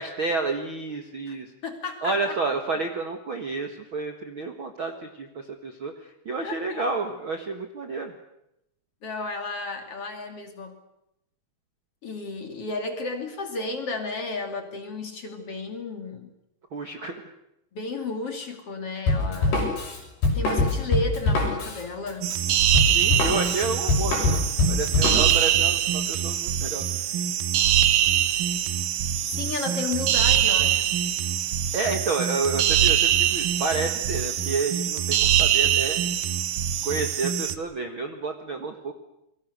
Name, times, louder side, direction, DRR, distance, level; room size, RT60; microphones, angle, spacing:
voice 1, 0.0-1.5 2.0-8.1 16.7-17.2 22.9-26.8 31.7-36.0 36.8-38.9, right 3 dB, 50° right, 5 dB, 1.7 m, -30 dB
voice 2, 1.6-2.4 6.4-6.9 9.0-10.8 12.0-16.3 17.7-19.6 20.3-22.3 29.4-31.0, left 3 dB, 40° left, 5 dB, 3.1 m, -33 dB
Drum kit, 19.1-25.5, left 2 dB, 80° left, 8.1 m, -24 dB
sound 1, 22.2-37.6, right 10 dB, 70° right, 2.5 m, -23 dB
29.0 x 23.0 x 6.7 m, 0.82 s
omnidirectional pair, 4.5 m